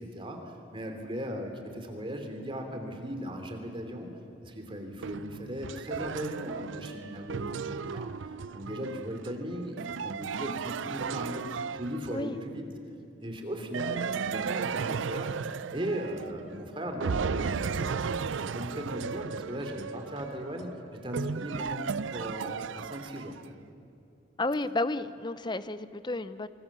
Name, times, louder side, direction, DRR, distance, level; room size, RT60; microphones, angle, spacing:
voice 1, 0.0-4.1 4.4-8.1 8.5-12.6 13.2-15.3 15.7-23.3, equal, 25° right, 4 dB, 3.0 m, -38 dB
sound 1, 5.0-12.4 13.7-16.6 17.0-23.5, right 6 dB, 85° right, 0.5 m, -35 dB
voice 2, 24.4-26.5, left 2 dB, 25° left, 13 dB, 0.7 m, -32 dB
25.5 x 24.5 x 7.4 m, 2.8 s
head